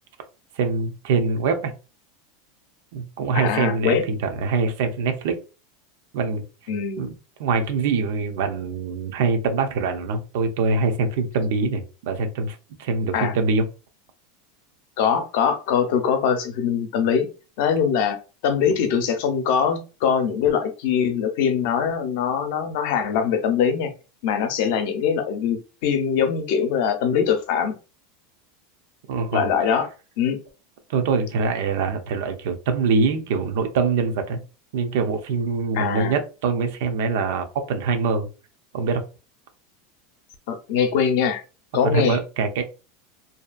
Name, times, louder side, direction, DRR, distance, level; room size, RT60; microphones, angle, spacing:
voice 1, 0.5-1.7 2.9-5.4 6.1-6.4 7.0-7.1 7.4-13.7 29.1-29.5 30.9-34.4 34.7-38.3 38.7-39.0 41.8-42.6, right 4 dB, 65° right, 6 dB, 0.6 m, -24 dB
voice 2, 3.3-4.0 6.7-7.1 13.1-13.3 15.0-17.3 17.6-18.2 18.4-23.9 24.2-27.7 29.3-29.9 30.2-30.4 35.7-36.1 40.5-41.4 41.7-42.2, left 7 dB, 60° left, 6 dB, 0.6 m, -22 dB
2.7 x 2.3 x 2.4 m, 0.32 s
supercardioid pair, 160°, 0 cm